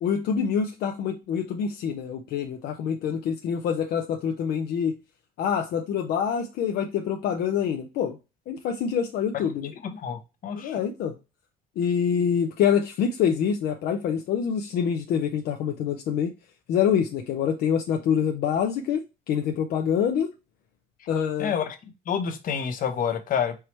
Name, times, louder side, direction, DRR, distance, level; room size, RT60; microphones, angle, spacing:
voice 1, 0.0-5.0 5.4-8.2 8.5-9.7 10.5-11.1 11.8-16.3 16.7-19.0 19.3-20.3 21.1-21.5, left 7 dB, 70° left, 0.6 m, -26 dB
voice 2, 9.9-10.8 21.4-21.8 22.1-23.6, left 7 dB, 55° left, 1.0 m, -28 dB
4.6 x 3.1 x 3.2 m
cardioid pair, 110°, 17 cm